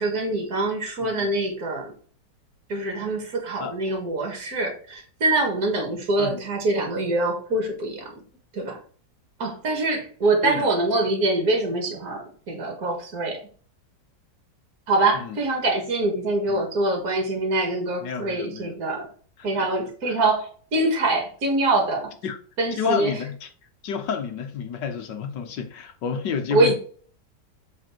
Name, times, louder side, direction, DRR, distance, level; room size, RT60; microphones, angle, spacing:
voice 1, 0.0-1.9 2.7-8.1 8.5-8.8 9.4-13.4 14.9-19.1 19.4-22.1 22.6-23.2 26.5-26.8, right 2 dB, 60° right, 2.3 m, -24 dB
voice 2, 18.0-18.8 19.5-19.7 20.1-20.2 22.2-22.4 22.8-23.5 23.8-26.8, left 6 dB, 75° left, 1.8 m, -30 dB
7.7 x 4.6 x 4.6 m
omnidirectional pair, 1.9 m